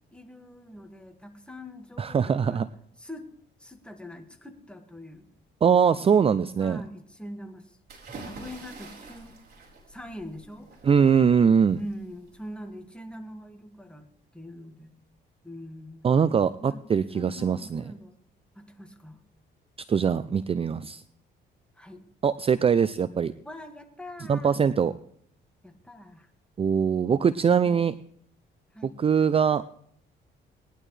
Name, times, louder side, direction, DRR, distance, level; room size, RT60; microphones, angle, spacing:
voice 1, 0.1-2.6 3.0-3.3 3.6-5.3 6.6-7.8 8.2-9.4 9.9-10.8 11.7-14.1 14.3-14.9 15.4-16.0 16.6-16.8 17.1-18.2 18.6-19.2 21.8-22.0 23.4-24.5 25.6-26.3 27.5-28.0 28.7-28.9, left 1 dB, 5° left, 4 dB, 1.9 m, -43 dB
voice 2, 2.0-2.7 5.6-6.8 10.8-11.8 16.0-17.8 19.9-21.0 22.2-23.3 24.3-24.9 26.6-27.9 28.8-29.6, right 7 dB, 30° right, 15 dB, 0.4 m, -22 dB
sound 1, 7.9-12.7, right 3 dB, 50° right, 4.5 m, -47 dB
19.5 x 11.0 x 3.3 m, 0.66 s
cardioid pair, 90°, 20 cm